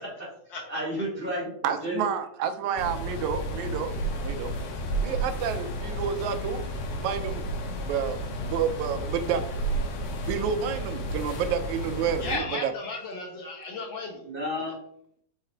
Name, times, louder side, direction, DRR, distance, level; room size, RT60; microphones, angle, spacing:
voice 1, 0.0-2.1 14.2-14.7, equal, 40° right, -3 dB, 0.8 m, -32 dB
voice 2, 1.6-3.9 4.2-4.5 5.0-6.6 7.0-7.5 7.8-9.5 10.3-12.7, right 8 dB, 80° right, 8 dB, 1.9 m, -29 dB
sound 1, 2.8-12.4, right 1 dB, 85° left, 2.4 m, -32 dB
voice 3, 12.2-14.2, left 3 dB, 60° left, 0 dB, 1.3 m, -34 dB
5.6 x 4.0 x 4.4 m, 0.69 s
omnidirectional pair, 3.5 m